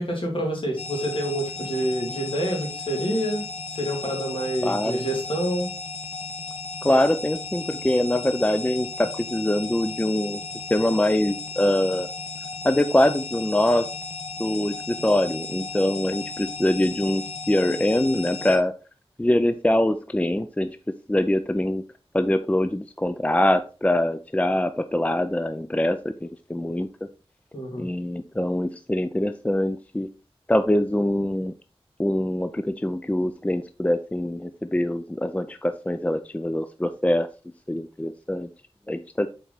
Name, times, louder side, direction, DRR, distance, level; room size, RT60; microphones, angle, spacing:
voice 1, 0.0-3.4 3.8-5.7 27.5-27.9, equal, 55° left, 0 dB, 3.0 m, -27 dB
sound 1, 0.8-18.6, left 4 dB, 85° left, 1.0 m, -35 dB
voice 2, 4.6-5.0 6.8-10.4 10.7-12.1 12.6-13.9 14.4-18.8 19.2-21.8 22.1-26.9 27.8-30.1 30.5-31.5 32.0-37.3 37.7-38.5 38.9-39.3, left 1 dB, 15° left, 10 dB, 0.4 m, -24 dB
7.3 x 4.8 x 4.1 m, 0.34 s
wide cardioid pair, 70°, 10 cm